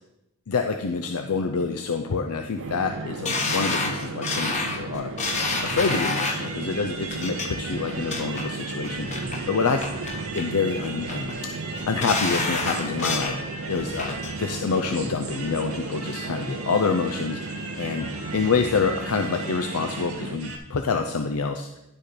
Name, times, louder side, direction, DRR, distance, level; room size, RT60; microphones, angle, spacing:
voice 1, 0.5-5.1 5.6-9.8 10.3-18.1 18.3-21.7, left 4 dB, 90° left, 5 dB, 0.6 m, -27 dB
sound 1, 2.6-20.4, right 3 dB, 60° right, 0.6 m, -35 dB
sound 2, 3.3-6.5 7.1-7.5 7.9-8.4 8.8-9.4 9.8-10.5 10.8-11.3 11.8-13.4 13.7-14.3 14.7-14.8, left 3 dB, 35° left, 1.2 m, -28 dB
sound 3, 5.3-20.6, right 3 dB, 85° right, 1.9 m, -38 dB
11.5 x 4.3 x 5.0 m, 0.90 s
head